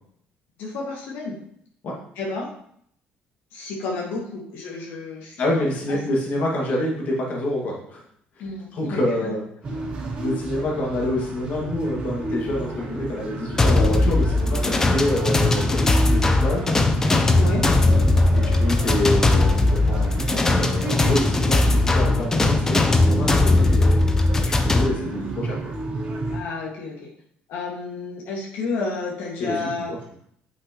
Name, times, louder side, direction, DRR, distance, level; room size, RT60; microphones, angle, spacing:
voice 1, 0.6-1.4 2.2-2.5 3.5-6.0 8.4-9.4 17.3-17.6 24.7-25.3 26.3-27.1 27.5-30.0, left 3 dB, 80° left, -2 dB, 1.8 m, -31 dB
voice 2, 5.4-8.0 8.7-9.4 10.2-16.7 18.3-24.1 24.4-25.6 29.4-30.0, left 1 dB, 45° left, -2 dB, 1.9 m, -27 dB
sound 1, 9.6-26.4, right 2 dB, 30° right, 1.8 m, -31 dB
sound 2, 13.6-24.9, left 2 dB, 15° left, 0.5 m, -19 dB
8.1 x 5.9 x 3.0 m, 0.65 s
cardioid pair, 170°, 4 cm